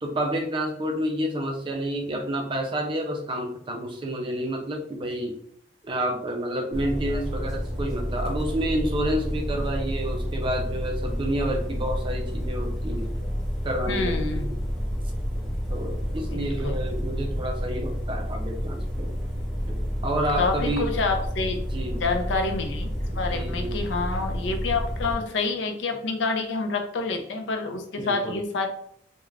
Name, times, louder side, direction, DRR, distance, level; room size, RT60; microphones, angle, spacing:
voice 1, 0.0-5.3 5.8-13.1 13.6-14.6 15.7-19.1 19.7-20.9 21.7-22.2 23.3-23.8 28.0-28.4, right 1 dB, 25° right, 2 dB, 0.4 m, -29 dB
sound 1, 6.7-25.2, equal, ahead, 0.7 m, -30 dB
voice 2, 13.9-14.5 16.3-16.8 20.4-21.6 22.0-28.7, left 3 dB, 70° left, 5 dB, 0.4 m, -28 dB
2.4 x 2.2 x 3.1 m, 0.68 s
head